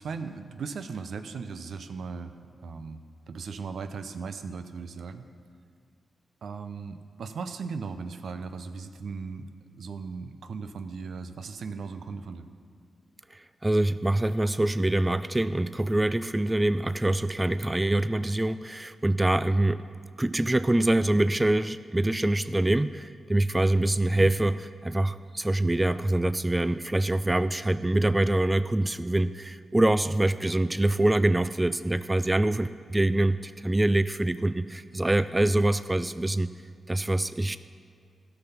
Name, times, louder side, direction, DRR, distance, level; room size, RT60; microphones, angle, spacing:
voice 1, 0.0-2.3 2.6-3.0 3.3-5.3 6.4-9.5 9.8-12.4, right 5 dB, 75° right, 9 dB, 0.5 m, -37 dB
voice 2, 13.3-19.8 20.2-36.5 36.9-37.6, right 1 dB, 20° right, 13 dB, 0.3 m, -25 dB
13.0 x 5.9 x 5.8 m, 2.2 s
supercardioid pair, 45°, 0 cm